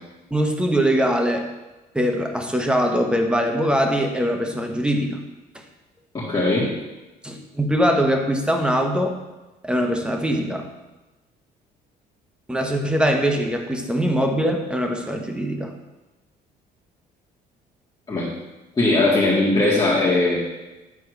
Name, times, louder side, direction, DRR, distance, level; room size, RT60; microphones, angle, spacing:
voice 1, 0.3-1.5 1.9-5.2 5.5-5.6 7.2-9.2 9.6-10.7 12.5-15.7, equal, 5° right, 3 dB, 1.2 m, -22 dB
voice 2, 6.1-6.7 18.1-18.3 18.8-20.4, left 2 dB, 25° left, -8 dB, 2.1 m, -19 dB
9.7 x 4.2 x 6.5 m, 1.1 s
cardioid pair, 110°, 17 cm